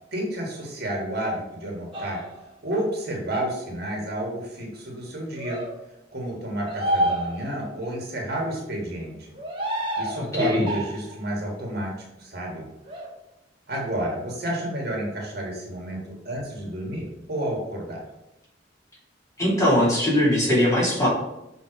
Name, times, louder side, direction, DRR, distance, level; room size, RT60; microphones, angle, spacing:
voice 1, 0.1-2.2 2.6-5.6 6.1-9.3 9.7-11.9 12.2-12.7 13.7-18.0, right 1 dB, 55° right, -1 dB, 1.6 m, -30 dB
sound 1, 1.9-2.5 5.4-5.7 6.7-7.8 9.3-10.3 10.7-11.2 12.8-13.1, right 1 dB, 30° right, 1.4 m, -28 dB
voice 2, 19.4-21.1, left 1 dB, 15° left, -6 dB, 2.6 m, -20 dB
6.2 x 3.9 x 4.9 m, 0.91 s
head